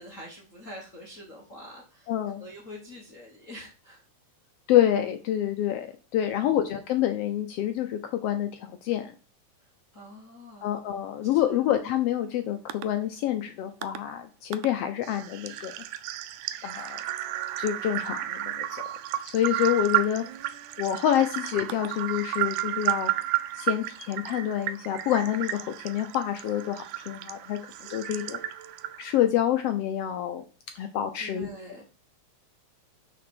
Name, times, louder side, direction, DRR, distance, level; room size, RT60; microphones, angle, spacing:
voice 1, 0.0-2.1 2.4-4.0 9.6-10.7 11.3-11.6 28.1-28.5 30.7-30.9 31.2-31.8, left 1 dB, 55° left, -2 dB, 0.8 m, -45 dB
voice 2, 2.1-2.4 4.7-5.9 6.1-9.1 10.6-15.7 16.6-17.0 17.6-18.8 19.2-20.2 20.8-23.1 23.5-27.6 27.9-28.4 29.0-30.4 30.8-31.5, left 11 dB, 80° left, 7 dB, 1.3 m, -27 dB
sound 1, 12.7-12.8 13.8-14.0 14.5-14.7 15.0-29.2, right 15 dB, 80° right, 2.0 m, -32 dB
6.0 x 5.0 x 6.1 m, 0.36 s
omnidirectional pair, 3.5 m